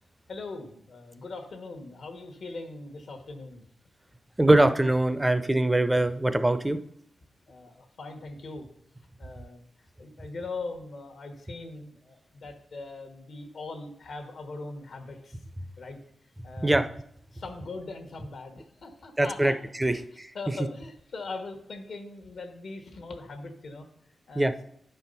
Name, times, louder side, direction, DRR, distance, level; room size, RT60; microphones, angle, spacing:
voice 1, 0.3-3.6 7.5-8.7 9.2-15.4 15.8-16.0 16.4-16.8 17.3-19.6 19.8-20.0 20.3-23.9 24.3-24.5, left 3 dB, 70° left, 5 dB, 1.1 m, -40 dB
voice 2, 4.4-6.8 16.6-16.8 19.2-19.5 19.8-20.3 24.3-24.5, right 1 dB, 10° right, 10 dB, 0.5 m, -22 dB
9.7 x 4.5 x 5.4 m, 0.71 s
wide cardioid pair, 120°, 0 cm